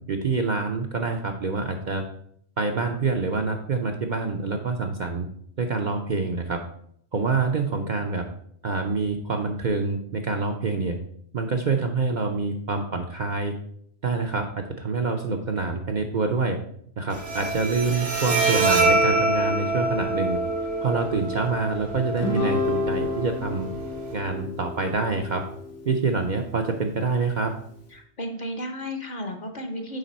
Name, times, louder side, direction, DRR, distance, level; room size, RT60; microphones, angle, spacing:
voice 1, 0.1-2.0 2.6-5.3 5.6-6.6 7.1-8.2 8.6-11.0 11.3-13.5 14.0-16.6 17.0-20.4 20.8-23.7 24.1-25.4 25.9-27.5, right 4 dB, 50° right, 3 dB, 0.6 m, -26 dB
Bowed string instrument, 17.1-24.1, right 2 dB, 75° right, 1.7 m, -26 dB
Guitar, 22.2-26.8, left 3 dB, 80° left, 1.8 m, -30 dB
voice 2, 27.9-30.0, equal, 45° left, 5 dB, 0.8 m, -33 dB
9.0 x 3.3 x 4.2 m, 0.69 s
omnidirectional pair, 1.2 m